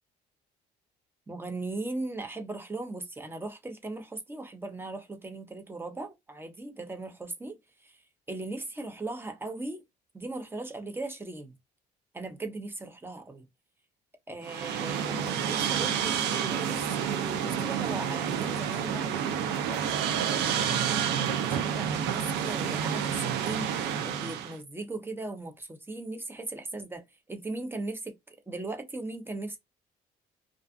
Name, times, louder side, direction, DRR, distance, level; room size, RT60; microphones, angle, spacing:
voice 1, 1.3-8.0 8.3-9.8 10.1-11.5 12.1-13.5 14.3-21.0 21.4-29.6, right 2 dB, 15° right, 0.7 m, -38 dB
sound 1, 14.4-24.6, right 8 dB, 85° right, 0.6 m, -29 dB
2.5 x 2.4 x 2.3 m
cardioid pair, 110°, 17 cm